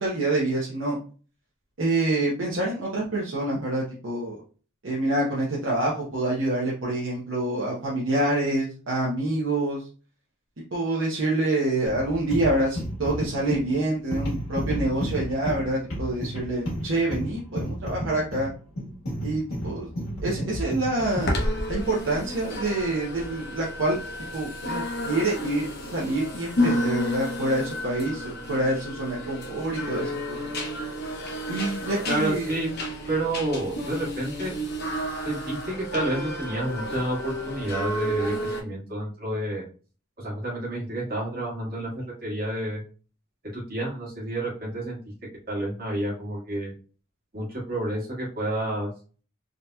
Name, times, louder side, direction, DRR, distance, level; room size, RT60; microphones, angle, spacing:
voice 1, 0.0-1.0 1.8-4.4 4.8-9.8 10.7-18.5 19.2-19.9 20.2-21.3 21.7-24.0 24.3-25.7 25.9-30.5 31.5-32.5, right 2 dB, 65° right, -5 dB, 0.8 m, -26 dB
sound 1, 11.9-21.4, equal, 75° left, 1.4 m, -32 dB
sound 2, 21.0-38.6, left 1 dB, 45° left, 0.7 m, -31 dB
voice 2, 32.1-32.7 33.1-34.5 35.2-39.6 40.2-42.8 43.5-45.0 45.5-46.7 47.3-48.9, right 1 dB, 45° right, -5 dB, 1.6 m, -29 dB
3.8 x 2.8 x 2.2 m, 0.38 s
head